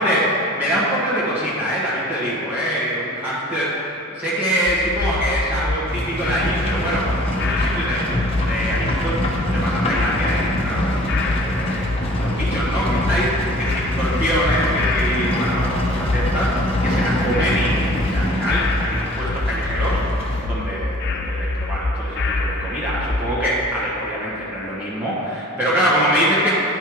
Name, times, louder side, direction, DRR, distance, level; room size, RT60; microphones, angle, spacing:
voice 1, 0.0-11.9 12.2-13.7 14.0-20.2 20.4-26.5, equal, 10° right, -10 dB, 1.4 m, -24 dB
sound 1, 4.7-23.3, left 2 dB, 50° left, 0.6 m, -25 dB
Livestock farm animals working animals, 5.9-20.5, left 1 dB, 25° left, 1.1 m, -26 dB
9.9 x 5.6 x 4.7 m, 2.9 s
head